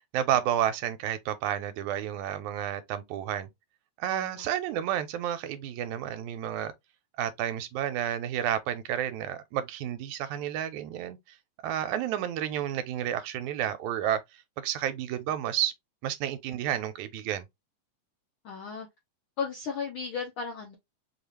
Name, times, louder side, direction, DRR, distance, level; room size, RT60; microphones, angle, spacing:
voice 1, 0.1-3.5 4.0-6.7 7.2-11.2 11.6-14.2 14.6-15.7 16.0-17.4, right 11 dB, 85° right, 2.0 m, -31 dB
voice 2, 4.1-4.4 18.4-18.9 19.4-20.8, left 5 dB, 75° left, 1.1 m, -35 dB
5.2 x 2.4 x 3.2 m
omnidirectional pair, 3.4 m